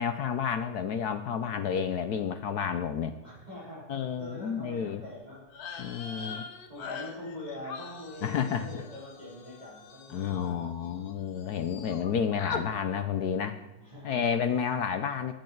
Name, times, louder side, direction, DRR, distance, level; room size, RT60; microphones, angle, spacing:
voice 1, 0.0-3.2 3.9-5.0 5.8-6.5 8.2-8.8 10.1-13.6 14.0-15.3, left 7 dB, 70° left, 10 dB, 1.0 m, -30 dB
voice 2, 3.2-3.9 4.2-5.4 6.0-10.7 13.8-14.4, left 1 dB, 20° right, -8 dB, 4.3 m, -44 dB
sound 1, 5.5-11.1 11.4-12.1 12.4-12.7, left 5 dB, 50° left, 1.4 m, -42 dB
20.0 x 8.0 x 4.6 m, 1.1 s
omnidirectional pair, 2.3 m